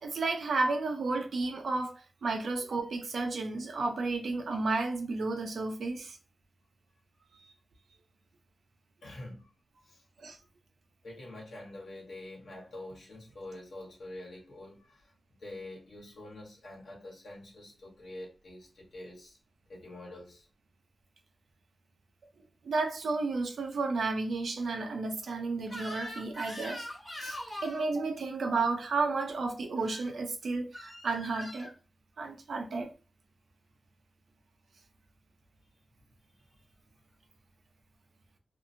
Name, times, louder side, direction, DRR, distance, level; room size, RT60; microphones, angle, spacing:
voice 1, 0.0-6.2 10.2-10.4 22.6-26.9 27.2-31.7 32.2-32.9, right 3 dB, 85° right, 0.5 m, -32 dB
voice 2, 9.0-9.5 9.8-10.0 11.0-15.1 15.4-19.4 19.7-20.5, left 1 dB, 80° left, 1.1 m, -46 dB
Crying sobbing / Screech, 25.7-27.9 29.8-30.1 30.7-31.7, left 1 dB, 20° left, 0.8 m, -42 dB
2.6 x 2.6 x 2.6 m
wide cardioid pair, 145°, 0 cm